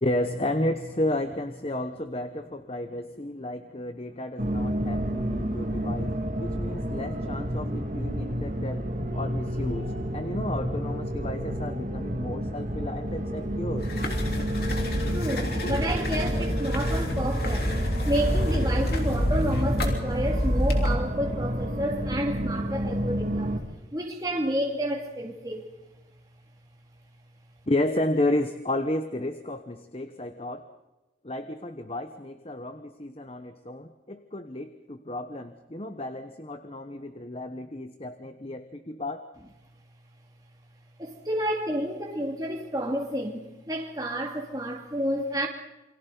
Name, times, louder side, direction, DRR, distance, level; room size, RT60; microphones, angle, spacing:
voice 1, 0.0-13.9 27.7-30.7 31.2-39.3, left 1 dB, 30° left, 1.0 m, -32 dB
sound 1, 4.4-23.6, equal, 40° right, 2.2 m, -30 dB
sound 2, 13.8-21.0, equal, 55° left, 3.6 m, -27 dB
voice 2, 15.1-17.8 18.1-23.6 23.9-25.7 41.0-45.5, right 1 dB, 20° right, 2.3 m, -30 dB
28.5 x 24.5 x 4.0 m
head